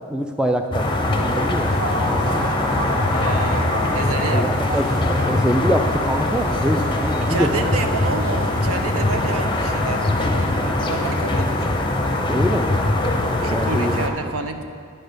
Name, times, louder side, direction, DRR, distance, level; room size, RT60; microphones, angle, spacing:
voice 1, 0.1-0.9 1.2-2.6 4.3-7.5 12.3-12.9 13.5-14.0, equal, 5° right, 5 dB, 0.3 m, -24 dB
sound 1, 0.7-14.1, left 2 dB, 20° left, 0.6 m, -21 dB
sound 2, 1.0-8.7, right 2 dB, 45° right, 0.8 m, -34 dB
voice 2, 3.1-4.7 7.2-11.7 13.4-14.6, right 3 dB, 75° right, 7 dB, 0.7 m, -29 dB
10.0 x 6.5 x 5.1 m, 2.2 s
head